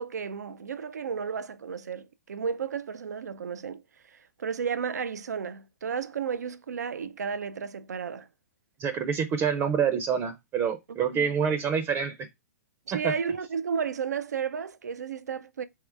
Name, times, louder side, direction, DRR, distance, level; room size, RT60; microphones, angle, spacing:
voice 1, 0.0-8.3 11.1-11.3 12.9-15.6, right 6 dB, 90° right, 0.5 m, -33 dB
voice 2, 8.8-12.3 13.0-13.1, right 7 dB, 30° right, 0.6 m, -27 dB
3.7 x 3.1 x 4.5 m
hypercardioid pair, 125°, 9 cm